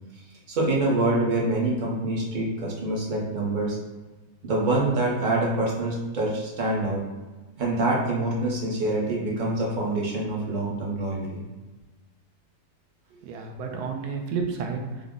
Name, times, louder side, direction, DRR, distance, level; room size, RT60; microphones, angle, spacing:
voice 1, 0.5-3.8 4.4-7.0 7.6-11.4, right 2 dB, 50° right, -4 dB, 0.6 m, -25 dB
voice 2, 13.1-15.1, right 5 dB, 75° right, 3 dB, 1.1 m, -31 dB
3.6 x 2.0 x 3.6 m, 1.2 s
omnidirectional pair, 1.8 m